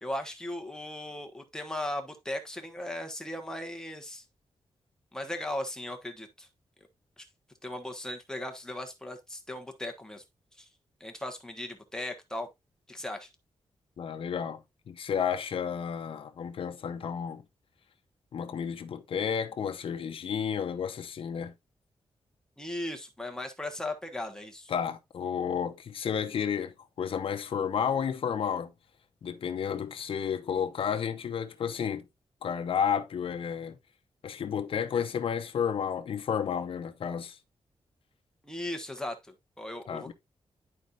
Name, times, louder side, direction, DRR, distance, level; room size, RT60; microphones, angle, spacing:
voice 1, 0.0-4.2 5.1-6.5 7.2-7.3 7.6-10.2 10.6-10.7 11.0-12.5 12.9-13.3 22.6-24.7 38.4-40.1, left 1 dB, 5° left, 1.2 m, -37 dB
voice 2, 14.0-17.4 18.3-21.5 24.7-28.7 29.2-32.0 32.4-33.8 34.2-37.4 39.9-40.1, left 7 dB, 65° left, 0.8 m, -32 dB
11.0 x 4.2 x 2.5 m
wide cardioid pair, 145°, 10 cm